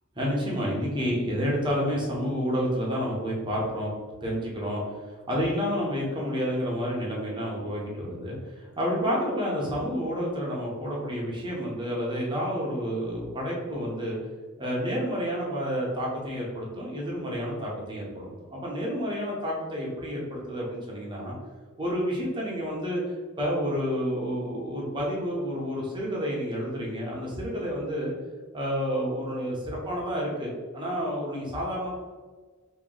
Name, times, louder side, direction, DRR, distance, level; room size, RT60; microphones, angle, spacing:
voice 1, 0.2-3.9 4.2-4.8 5.3-14.2 14.6-21.3 21.8-23.0 23.4-28.1 28.5-31.9, equal, 20° right, -4 dB, 0.9 m, -29 dB
3.0 x 2.9 x 3.9 m, 1.4 s
head